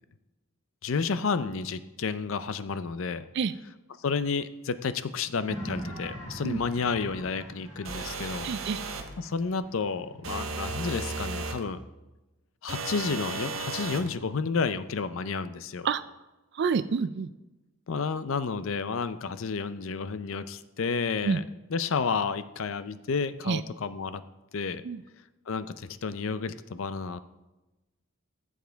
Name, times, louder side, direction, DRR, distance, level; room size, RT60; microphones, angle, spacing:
voice 1, 0.8-3.3 4.0-8.5 9.2-11.8 12.6-15.9 17.9-21.4 21.7-24.2 24.5-24.8 25.5-27.2, left 5 dB, 70° left, 13 dB, 0.5 m, -31 dB
sound 1, 5.5-10.7, equal, 30° left, 3.3 m, -42 dB
sound 2, 7.8-9.1 10.2-11.6 12.7-14.1, right 4 dB, 75° right, 1.1 m, -35 dB
voice 2, 8.4-8.8 15.8-16.0 16.5-17.3 21.2-21.4 23.4-23.6 24.8-25.0, right 5 dB, 55° right, 13 dB, 0.3 m, -28 dB
14.5 x 7.3 x 3.5 m, 1.0 s
head